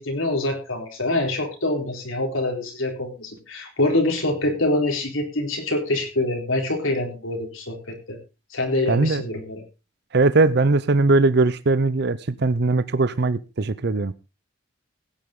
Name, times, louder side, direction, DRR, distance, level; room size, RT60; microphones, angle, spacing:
voice 1, 0.0-7.8 8.1-8.2 8.5-9.6, left 2 dB, 90° left, 4.0 m, -25 dB
voice 2, 8.9-9.2 10.1-14.1, right 3 dB, 55° right, 0.7 m, -20 dB
16.5 x 9.6 x 3.8 m
head